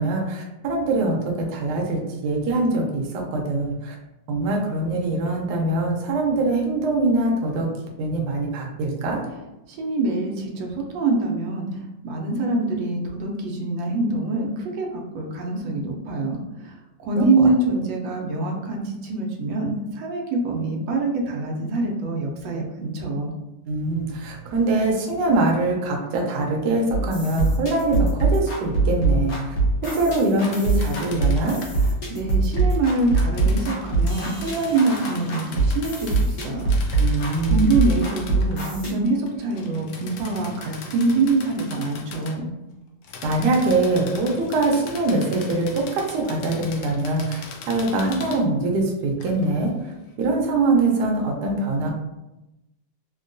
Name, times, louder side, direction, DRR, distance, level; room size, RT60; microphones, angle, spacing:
voice 1, 0.0-3.9 4.3-7.7 8.0-9.2 17.2-17.5 23.7-29.5 29.8-31.6 37.0-37.8 43.2-49.7 50.2-51.9, right 2 dB, 70° right, 0 dB, 1.1 m, -23 dB
voice 2, 9.7-11.7 12.0-16.8 17.0-23.3 32.1-36.7 37.5-42.5, right 3 dB, 90° right, 0 dB, 1.3 m, -25 dB
sound 1, 26.9-38.9, right 2 dB, 55° left, 1.3 m, -23 dB
sound 2, 30.4-31.9 32.5-38.7 39.0-42.4 43.0-48.4 49.2-49.5, left 4 dB, 75° left, 0.9 m, -40 dB
3.6 x 2.2 x 2.5 m, 0.96 s
omnidirectional pair, 2.0 m